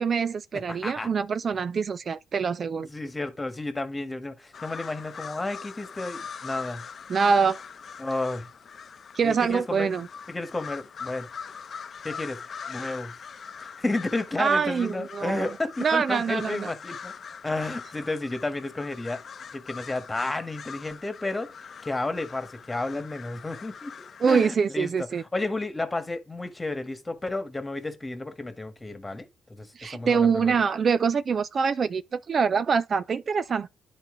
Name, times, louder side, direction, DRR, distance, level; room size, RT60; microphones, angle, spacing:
voice 1, 0.0-2.9 7.1-7.6 9.2-10.1 14.4-16.7 24.2-25.2 29.8-33.7, right 6 dB, 45° right, 0.4 m, -25 dB
voice 2, 0.7-1.1 2.9-6.8 8.0-8.5 9.2-9.9 10.3-11.3 12.0-12.4 12.7-13.1 13.6-17.1 17.4-19.2 19.5-21.5 21.8-23.9 24.2-25.1 25.3-30.5, left 2 dB, 20° left, 1.5 m, -32 dB
sound 1, 4.5-24.3, left 6 dB, 50° left, 0.7 m, -42 dB
10.5 x 4.1 x 3.8 m
cardioid pair, 90°, 0 cm